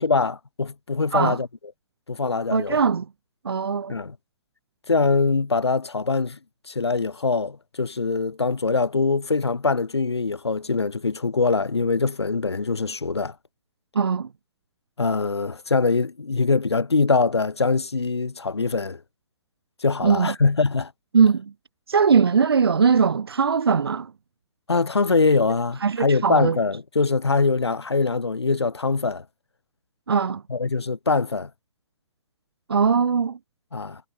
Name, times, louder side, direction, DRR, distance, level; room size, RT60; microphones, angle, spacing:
voice 1, 0.0-1.5 2.1-2.8 3.9-4.2 4.9-6.4 6.7-13.3 15.0-19.0 19.8-20.9 24.7-29.2 30.5-31.5 33.7-34.0, left 4 dB, 70° left, 5.1 m, -23 dB
voice 2, 2.5-3.1 3.4-3.9 13.9-14.3 20.0-20.3 21.1-21.5 21.9-24.1 25.8-26.6 30.1-30.4 32.7-33.4, right 6 dB, 60° right, 7.3 m, -20 dB
figure-of-eight pair, 120°, 14 cm